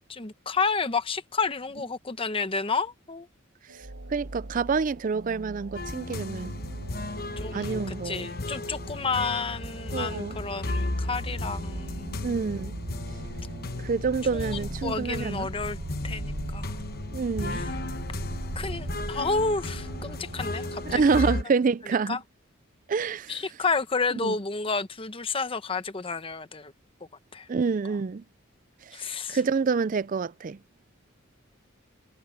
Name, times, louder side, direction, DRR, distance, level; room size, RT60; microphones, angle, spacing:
voice 1, 0.1-3.3 7.4-12.2 14.3-15.8 16.0-16.7 17.5-17.7 18.6-21.0 22.1-22.2 23.3-26.7 27.3-27.5 28.9-29.4, left 4 dB, 25° left, 0.9 m, -30 dB
sound 1, 3.7-21.1, right 2 dB, 90° right, 1.2 m, -39 dB
voice 2, 4.1-6.5 7.5-8.3 9.9-10.3 12.2-12.8 13.8-15.5 17.1-17.6 20.9-22.2 22.9-23.4 24.2-24.3 27.5-28.2 29.3-30.6, right 5 dB, 40° right, 0.4 m, -27 dB
sound 2, 5.7-21.4, left 2 dB, 50° left, 1.1 m, -35 dB
head